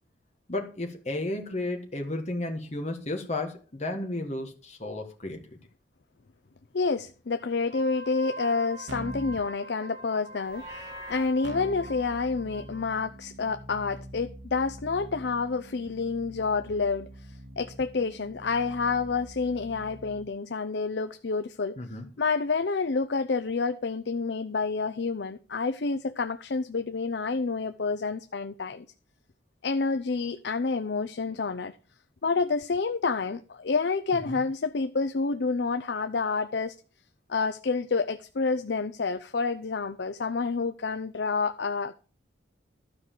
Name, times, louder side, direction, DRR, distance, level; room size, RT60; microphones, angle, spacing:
voice 1, 0.5-5.4 21.8-22.1 34.3-34.4, left 2 dB, 35° left, 1.8 m, -33 dB
voice 2, 6.7-21.8 22.2-28.8 29.6-31.7 32.2-36.8 37.3-42.0, left 4 dB, 60° left, 0.5 m, -29 dB
Wind instrument woodwind instrument, 7.6-12.9, right 1 dB, 40° right, 2.8 m, -43 dB
Keyboard (musical), 8.9-9.4 11.4-20.3, right 1 dB, 75° right, 1.5 m, -44 dB
Livestock farm animals working animals, 10.4-11.3, equal, 20° right, 3.6 m, -44 dB
12.5 x 4.9 x 7.5 m
head